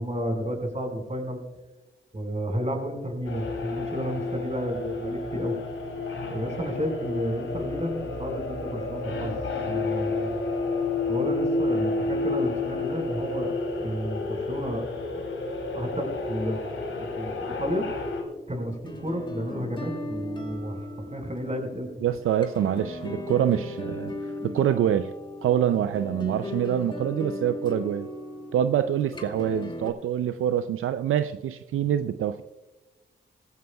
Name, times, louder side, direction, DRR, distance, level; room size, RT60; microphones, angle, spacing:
voice 1, 0.0-1.4 2.1-5.5 6.3-9.4 9.6-10.3 11.1-13.5 13.8-14.8 15.7-16.6 17.0-17.9 18.5-21.9, equal, 30° right, 2 dB, 5.1 m, -31 dB
sound 1, 3.2-18.2, left 3 dB, 75° left, 2.9 m, -30 dB
sound 2, 18.3-29.9, left 1 dB, 20° left, 2.3 m, -37 dB
voice 2, 22.0-25.1 25.4-28.1 28.5-32.4, right 10 dB, 80° right, 11 dB, 0.5 m, -25 dB
17.0 x 15.0 x 2.3 m, 1.1 s
supercardioid pair, 40°, 21 cm